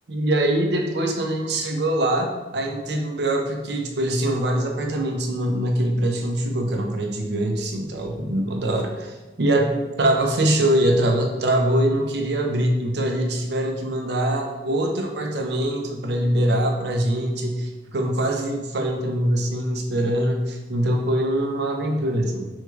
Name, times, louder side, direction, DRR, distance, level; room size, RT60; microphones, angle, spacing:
voice 1, 0.1-22.5, right 1 dB, 65° right, 2 dB, 0.6 m, -23 dB
3.5 x 3.1 x 3.5 m, 1.2 s
head